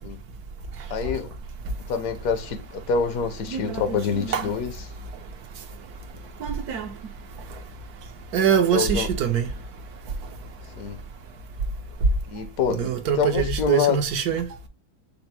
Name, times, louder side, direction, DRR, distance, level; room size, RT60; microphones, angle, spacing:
voice 1, 0.9-1.3 1.9-4.7 8.7-9.1 10.8-11.0 12.3-14.0, left 6 dB, 70° left, 1.1 m, -26 dB
voice 2, 3.5-4.6 6.4-7.1 7.5-7.6 8.3-9.5 12.7-14.5, right 7 dB, 85° right, 1.4 m, -24 dB
5.6 x 2.0 x 4.1 m
omnidirectional pair, 1.6 m